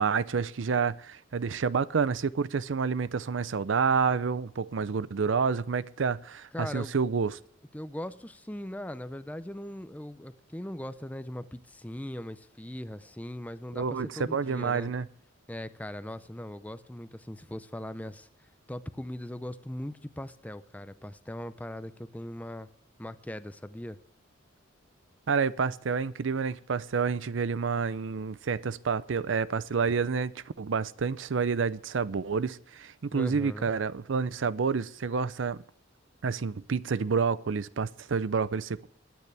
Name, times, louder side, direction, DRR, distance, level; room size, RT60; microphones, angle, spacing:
voice 1, 0.0-7.4 13.7-15.1 25.3-30.3 30.6-35.6 36.2-38.9, right 5 dB, 70° right, 0.5 m, -29 dB
voice 2, 6.5-6.9 7.7-14.9 15.5-18.3 18.7-22.7 23.0-24.0 33.1-33.7, left 1 dB, 10° left, 0.5 m, -39 dB
22.0 x 9.3 x 3.3 m
head